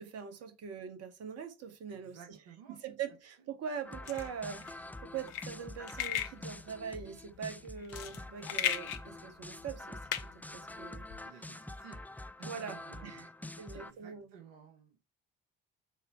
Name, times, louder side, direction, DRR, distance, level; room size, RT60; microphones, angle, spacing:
voice 1, 0.0-2.2 2.7-10.0 10.5-11.1 12.4-12.8 13.0-13.3 13.6-14.3, right 7 dB, 55° right, 2.1 m, -42 dB
voice 2, 1.9-2.8 3.4-3.5 11.2-12.0 12.4-15.0, right 8 dB, 75° right, 1.6 m, -55 dB
sound 1, 3.8-13.9, left 2 dB, 5° left, 0.7 m, -46 dB
sound 2, 4.0-11.2, left 11 dB, 80° left, 0.8 m, -38 dB
7.0 x 4.6 x 5.8 m
hypercardioid pair, 45°, 29 cm